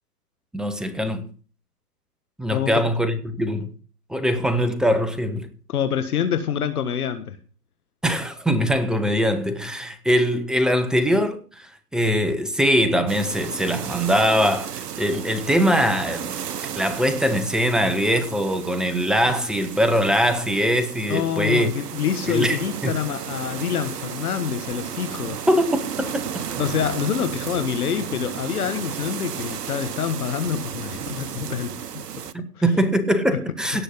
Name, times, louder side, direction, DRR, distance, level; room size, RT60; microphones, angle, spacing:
voice 1, 0.5-1.3 2.4-3.7 4.1-5.5 8.0-16.3 16.8-21.7 22.3-22.6 22.8-23.0 25.5-26.3 32.3-33.8, equal, ahead, 0.8 m, -22 dB
voice 2, 2.5-2.8 5.7-7.4 21.1-25.4 26.6-32.0, left 8 dB, 65° left, 1.5 m, -26 dB
sound 1, 13.1-32.3, right 8 dB, 75° right, 1.1 m, -34 dB
17.0 x 6.4 x 5.4 m
hypercardioid pair, 130°, 48 cm